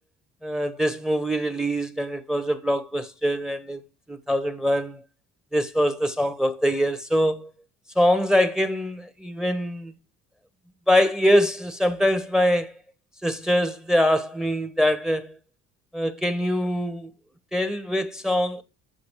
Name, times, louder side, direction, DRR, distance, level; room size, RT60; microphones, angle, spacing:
voice 1, 0.4-3.8 4.1-5.0 5.5-7.5 8.0-9.9 10.9-12.7 13.2-15.3 15.9-17.1 17.5-18.6, equal, ahead, 1.3 m, -23 dB
7.7 x 7.4 x 4.6 m
cardioid pair, 105°, 32 cm